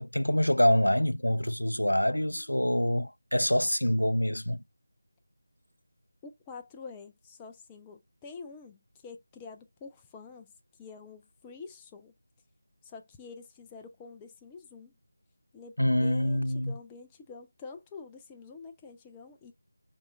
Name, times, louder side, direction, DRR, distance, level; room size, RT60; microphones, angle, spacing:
voice 1, 0.0-4.6 15.8-16.7, left 1 dB, 85° left, 0.3 m, -26 dB
voice 2, 6.2-12.1 12.8-14.9 15.5-19.5, left 4 dB, 10° left, 0.4 m, -47 dB
4.9 x 3.7 x 2.2 m
figure-of-eight pair, 165°, 0 cm